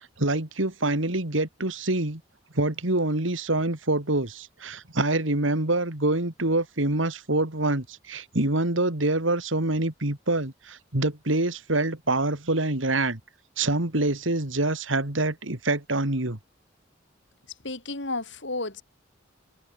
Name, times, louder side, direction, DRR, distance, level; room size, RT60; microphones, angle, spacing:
voice 1, 0.2-2.2 2.5-13.2 13.6-16.4, right 2 dB, 85° right, 3.3 m, -26 dB
voice 2, 17.6-18.8, left 2 dB, 70° left, 4.4 m, -32 dB
head